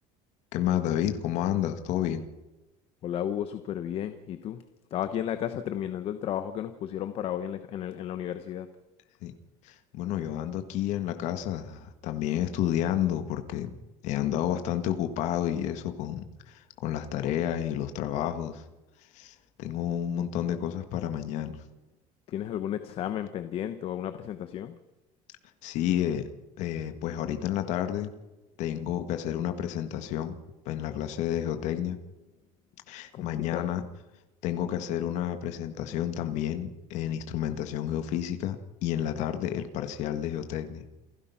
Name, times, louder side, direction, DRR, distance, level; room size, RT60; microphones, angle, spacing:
voice 1, 0.5-2.2 9.2-9.3 9.6-13.8 14.0-18.6 19.1-21.6 25.6-26.3 26.6-28.1 28.6-30.4 30.7-32.0 32.9-33.9 34.4-40.9, left 11 dB, 60° left, 8 dB, 1.8 m, -30 dB
voice 2, 3.0-4.6 4.9-8.7 22.3-24.8 33.1-33.7, left 10 dB, 45° left, 10 dB, 1.1 m, -33 dB
28.5 x 15.5 x 5.9 m, 1.0 s
cardioid pair, 165°, 14 cm